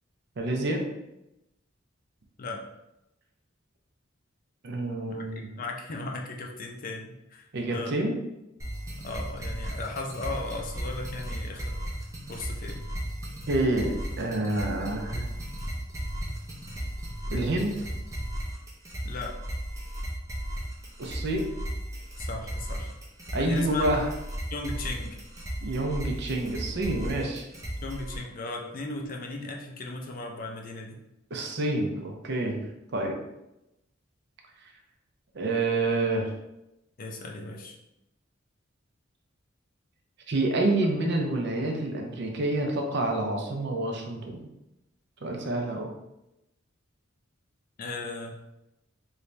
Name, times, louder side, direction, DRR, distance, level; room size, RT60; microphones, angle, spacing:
voice 1, 0.4-0.8 4.6-5.5 7.5-8.2 13.5-15.3 17.3-17.8 21.0-21.5 23.3-24.1 25.6-27.5 31.3-32.6 32.9-33.2 35.3-36.3 40.3-44.5 45.2-45.9, right 2 dB, 60° right, 2 dB, 0.6 m, -28 dB
voice 2, 5.1-7.9 9.0-11.8 12.3-12.9 19.0-19.4 22.2-22.9 23.3-24.0 24.5-25.2 27.8-31.0 37.0-37.7 47.8-48.4, left 2 dB, 45° left, 2 dB, 0.5 m, -36 dB
sound 1, 8.6-28.2, right 1 dB, 15° right, 0.6 m, -35 dB
3.2 x 2.6 x 3.2 m, 0.89 s
head